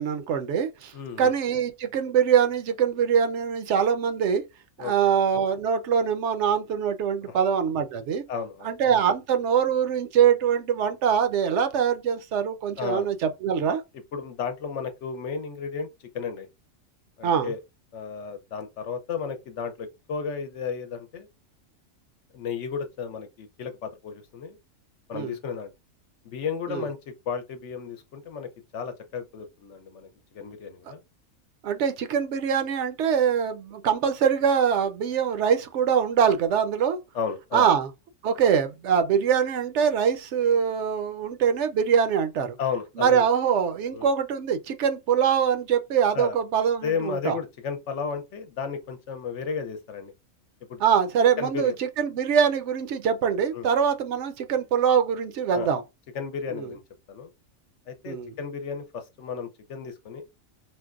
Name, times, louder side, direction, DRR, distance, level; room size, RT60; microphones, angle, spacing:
voice 1, 0.0-4.4 4.8-8.2 8.6-13.2 13.4-13.8 17.2-17.5 25.1-25.4 26.7-26.9 31.6-37.0 37.5-37.9 38.2-42.6 43.0-47.4 50.8-55.8 56.5-56.7 58.1-58.3, right 7 dB, 65° right, 0.8 m, -23 dB
voice 2, 0.9-1.3 4.8-4.9 8.3-8.7 12.8-13.1 14.1-15.9 16.1-16.5 17.2-17.6 17.9-21.3 22.3-24.6 25.1-25.7 26.2-30.1 30.3-31.0 37.1-37.7 42.6-43.2 43.9-44.1 46.1-46.4 46.8-50.1 50.7-50.8 51.4-51.7 53.5-53.7 55.5-55.7 56.1-56.8 57.1-57.3 57.9-60.2, left 6 dB, 65° left, 0.9 m, -33 dB
4.4 x 2.1 x 2.4 m
omnidirectional pair, 1.4 m